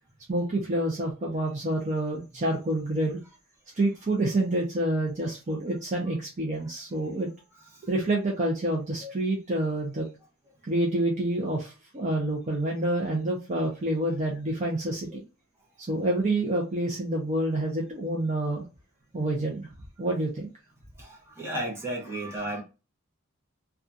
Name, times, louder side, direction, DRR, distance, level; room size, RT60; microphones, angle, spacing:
voice 1, 0.3-3.2 3.8-7.3 7.8-10.1 10.7-15.2 15.9-18.6 19.1-19.7 20.0-20.5, right 1 dB, 35° right, 0.5 m, -28 dB
voice 2, 21.0-22.6, right 1 dB, 10° right, 0.9 m, -34 dB
2.7 x 2.3 x 2.3 m
head